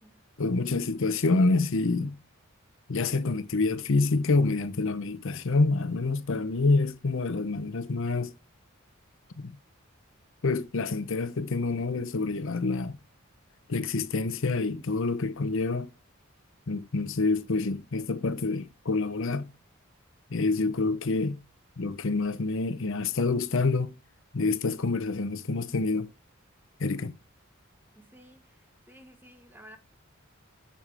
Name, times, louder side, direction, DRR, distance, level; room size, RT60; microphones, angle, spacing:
voice 1, 0.4-2.2 2.9-8.3 9.4-9.6 10.4-13.0 13.7-15.9 16.7-19.5 20.3-21.4 21.8-23.9 24.3-26.1 26.8-27.1, left 3 dB, 65° left, 0.7 m, -27 dB
voice 2, 20.4-20.7 28.0-29.8, equal, 10° right, 1.2 m, -54 dB
8.5 x 7.5 x 3.4 m
head